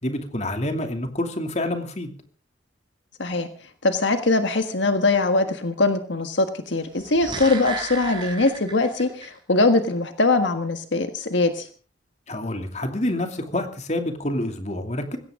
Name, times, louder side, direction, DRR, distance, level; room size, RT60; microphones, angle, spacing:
voice 1, 0.0-2.1 12.3-15.2, left 1 dB, 35° left, 5 dB, 2.7 m, -27 dB
voice 2, 3.8-11.7, left 2 dB, 75° left, 7 dB, 1.6 m, -22 dB
sound 1, 6.8-9.3 9.6-9.7, right 4 dB, 25° right, 6.6 m, -34 dB
20.5 x 17.0 x 3.7 m, 0.39 s
head